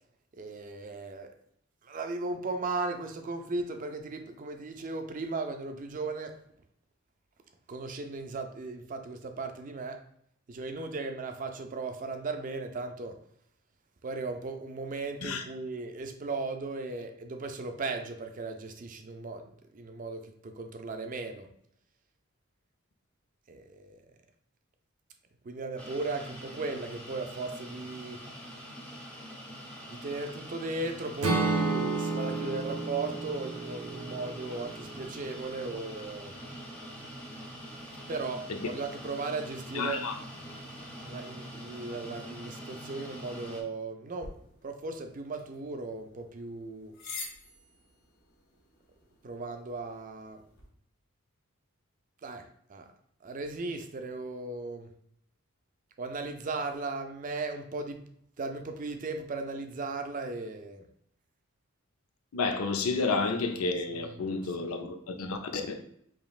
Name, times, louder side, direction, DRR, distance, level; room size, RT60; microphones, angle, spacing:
voice 1, 0.3-1.3 1.8-6.4 7.7-10.0 10.5-13.2 14.0-21.5 23.5-24.0 25.4-28.2 29.9-36.4 38.1-40.1 41.0-47.0 49.2-50.4 52.2-52.9 53.2-54.9 56.0-58.0 58.4-60.9 64.0-64.7, right 3 dB, 40° right, 0.4 m, -37 dB
sound 1, 25.8-43.6, equal, 5° left, 0.7 m, -44 dB
Acoustic guitar / Strum, 31.2-35.3, right 3 dB, 85° right, 0.7 m, -32 dB
voice 2, 39.7-40.1 62.3-65.8, left 3 dB, 85° left, 0.5 m, -31 dB
sound 2, 44.2-50.7, left 4 dB, 50° left, 0.9 m, -48 dB
5.0 x 3.0 x 2.4 m
head